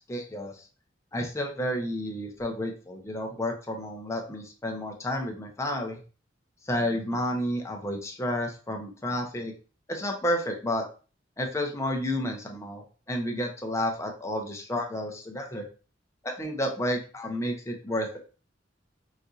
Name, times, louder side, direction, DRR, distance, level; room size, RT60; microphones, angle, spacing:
voice 1, 0.1-0.5 1.1-6.0 6.7-9.5 9.9-10.8 11.4-15.7 16.2-18.2, left 1 dB, 15° left, 2 dB, 0.6 m, -31 dB
4.1 x 2.6 x 2.4 m, 0.36 s
head